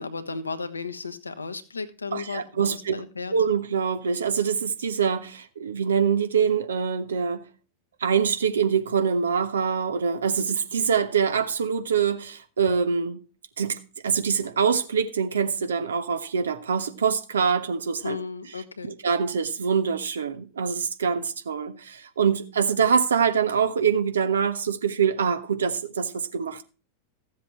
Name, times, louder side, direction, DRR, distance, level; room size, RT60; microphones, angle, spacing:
voice 1, 0.0-3.3 18.0-19.0, left 4 dB, 80° left, 1.2 m, -34 dB
voice 2, 2.1-3.0 3.3-7.5 8.0-13.2 13.6-13.8 14.0-18.2 19.0-26.6, right 6 dB, 70° right, 1.3 m, -24 dB
15.0 x 7.5 x 4.5 m
figure-of-eight pair, 90°, 0 cm